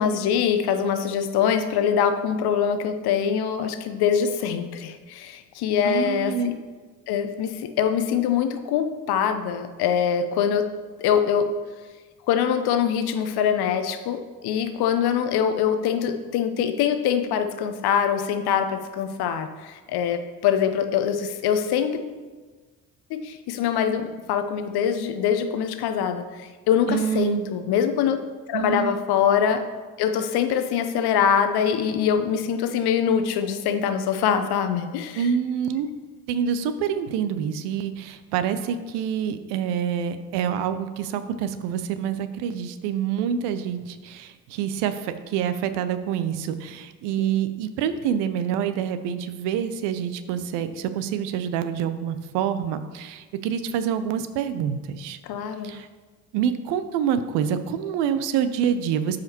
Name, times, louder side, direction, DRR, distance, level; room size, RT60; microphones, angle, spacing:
voice 1, 0.0-6.5 7.1-10.7 11.0-11.5 12.3-22.1 23.1-28.2 28.5-29.6 30.0-35.3 47.2-47.3 55.2-55.7, left 8 dB, 55° left, 8 dB, 0.8 m, -24 dB
voice 2, 5.8-6.5 26.9-27.5 28.5-29.0 35.2-35.9 36.3-55.2 55.6-55.9 56.3-59.2, right 8 dB, 60° right, 11 dB, 0.6 m, -27 dB
12.5 x 4.9 x 2.9 m, 1.4 s
figure-of-eight pair, 45°, 47 cm